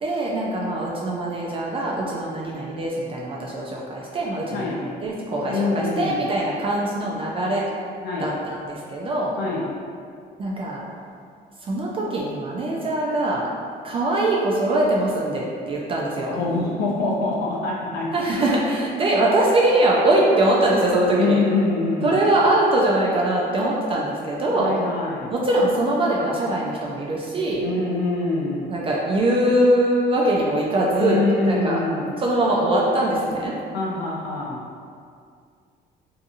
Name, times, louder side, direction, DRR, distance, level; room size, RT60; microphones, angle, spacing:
voice 1, 0.0-7.7 8.2-9.3 10.4-10.8 11.6-13.5 13.8-16.4 18.1-21.4 22.0-24.8 25.3-27.6 28.7-31.8 32.2-33.6, right 1 dB, 35° right, -3 dB, 0.3 m, -22 dB
voice 2, 5.5-6.3 8.0-8.3 9.4-9.7 16.3-18.1 21.2-22.2 24.6-25.3 27.6-28.7 30.9-32.1 33.7-34.6, left 3 dB, 70° left, -4 dB, 0.5 m, -24 dB
2.7 x 2.5 x 2.5 m, 2.3 s
cardioid pair, 110°, 17 cm